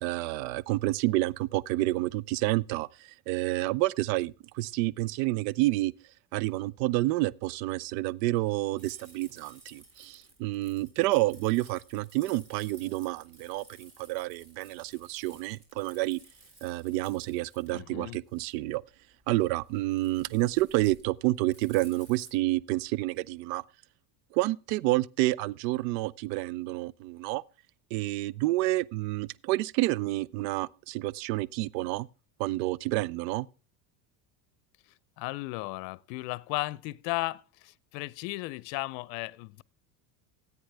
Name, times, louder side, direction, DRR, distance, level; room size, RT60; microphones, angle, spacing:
voice 1, 0.0-5.9 6.3-16.2 16.6-18.8 19.3-23.6 24.3-27.4 27.9-32.1 32.4-33.5, right 18 dB, 80° right, 0.6 m, -29 dB
sound 1, 8.8-22.3, right 1 dB, 30° right, 4.4 m, -56 dB
voice 2, 17.7-18.2 35.2-39.6, left 22 dB, 75° left, 0.7 m, -35 dB
14.5 x 8.5 x 3.4 m
supercardioid pair, 110°, 50 cm